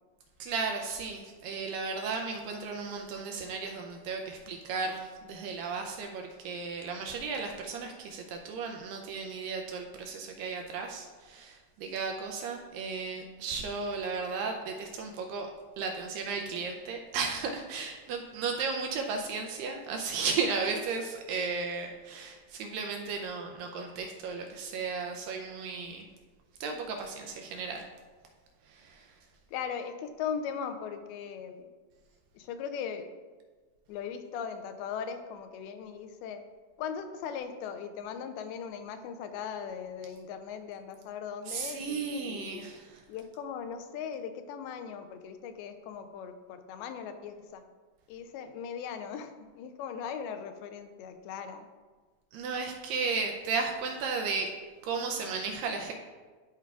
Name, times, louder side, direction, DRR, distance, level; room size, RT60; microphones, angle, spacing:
voice 1, 0.4-15.5 15.8-26.1 26.6-27.8 28.7-29.1 41.5-43.0 52.3-54.5 54.8-55.9, right 4 dB, 80° right, 2 dB, 2.1 m, -34 dB
voice 2, 29.5-31.7 32.4-33.1 33.9-36.4 36.8-42.7 43.1-47.6 48.1-51.6, left 7 dB, 90° left, 8 dB, 2.5 m, -39 dB
12.5 x 4.5 x 2.4 m, 1.4 s
omnidirectional pair, 4.3 m